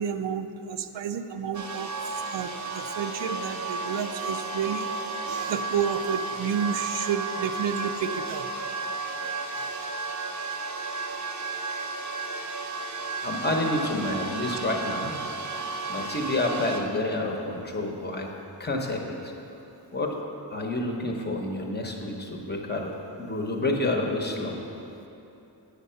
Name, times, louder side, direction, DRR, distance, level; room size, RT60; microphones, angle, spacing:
voice 1, 0.0-1.9 2.2-8.6 9.6-9.9 14.5-14.6, right 7 dB, 75° right, 8 dB, 0.5 m, -31 dB
sound 1, 1.5-16.8, right 3 dB, 40° right, 0.8 m, -33 dB
voice 2, 13.2-15.1 15.9-18.3 18.6-19.3 19.9-20.2 20.5-22.9 23.2-24.6, left 2 dB, 25° left, 1 dB, 0.8 m, -29 dB
8.2 x 7.4 x 5.6 m, 2.8 s
wide cardioid pair, 175°, 44 cm